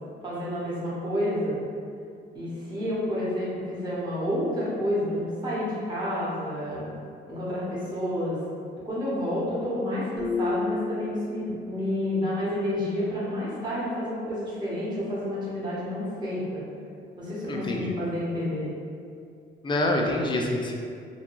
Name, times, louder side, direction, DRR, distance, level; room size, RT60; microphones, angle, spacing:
voice 1, 0.2-1.6 2.3-6.9 7.3-8.4 8.8-16.6 17.2-18.7, left 1 dB, 20° right, -10 dB, 1.1 m, -29 dB
sound 1, 10.2-11.9, left 3 dB, 70° right, 0.8 m, -31 dB
voice 2, 17.5-17.9 19.6-20.7, left 1 dB, 25° left, 0 dB, 0.4 m, -26 dB
2.3 x 2.2 x 3.0 m, 2.4 s
cardioid pair, 90°, 20 cm